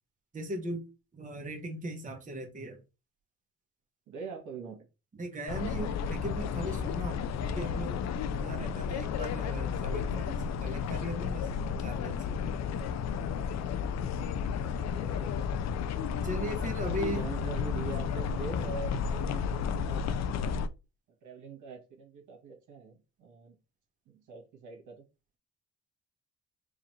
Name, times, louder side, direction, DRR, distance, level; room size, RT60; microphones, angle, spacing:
voice 1, 0.3-0.8 1.1-2.8 5.1-11.5 11.8-12.6 16.2-17.3, right 1 dB, 25° right, 3 dB, 1.0 m, -38 dB
voice 2, 4.1-4.8 7.4-7.5 10.6-10.9 12.6-12.7 13.1-13.2 14.6-15.5 16.9-20.1 21.2-23.6 24.1-25.0, right 5 dB, 75° right, 2 dB, 1.5 m, -43 dB
sound 1, 5.5-20.7, left 6 dB, 60° left, 0.5 m, -32 dB
4.9 x 2.5 x 3.1 m, 0.29 s
cardioid pair, 90°, 30 cm